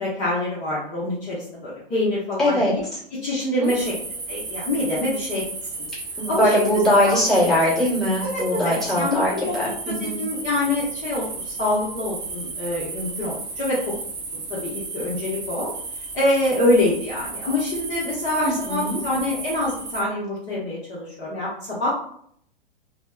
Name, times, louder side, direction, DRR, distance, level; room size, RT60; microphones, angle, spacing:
voice 1, 0.0-2.8 3.1-4.0 4.3-5.4 6.3-7.2 8.2-14.0 14.3-15.7 16.1-21.9, left 2 dB, 25° left, -7 dB, 0.8 m, -25 dB
voice 2, 2.4-3.0 3.4-3.7 6.2-10.2 18.4-19.0, equal, ahead, -10 dB, 1.1 m, -21 dB
sound 1, 3.6-20.0, right 3 dB, 15° right, 0.5 m, -34 dB
3.1 x 2.0 x 2.2 m, 0.64 s
figure-of-eight pair, 115°, 29 cm